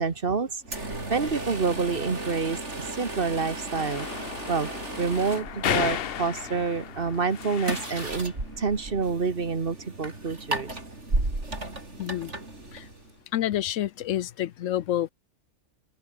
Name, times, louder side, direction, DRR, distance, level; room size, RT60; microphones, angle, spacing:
voice 1, 0.0-4.1 4.5-4.7 5.0-10.8, right 4 dB, 45° right, 1.6 m, -28 dB
sound 1, 0.6-13.2, right 2 dB, 65° right, 5.3 m, -35 dB
sound 2, 3.8-8.3, left 9 dB, 55° left, 0.8 m, -33 dB
voice 2, 12.0-12.3 12.7-12.8 13.3-15.1, left 12 dB, 80° left, 1.0 m, -28 dB
open air
omnidirectional pair, 1.3 m